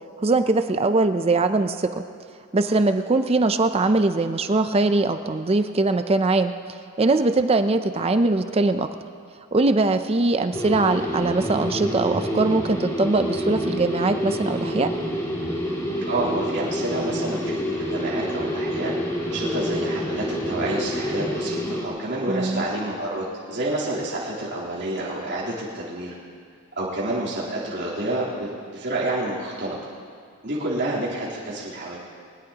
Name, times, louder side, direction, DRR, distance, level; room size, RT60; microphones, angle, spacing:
voice 1, 0.2-2.0 2.5-6.5 7.0-8.9 9.5-14.9 22.3-22.7, right 3 dB, 25° right, 9 dB, 0.5 m, -21 dB
sound 1, 10.5-21.9, equal, 15° left, 2.5 m, -27 dB
voice 2, 16.1-18.9 19.2-26.1 26.7-29.8 30.4-32.0, right 2 dB, 55° right, -7 dB, 3.5 m, -28 dB
22.5 x 20.0 x 2.9 m, 2.2 s
head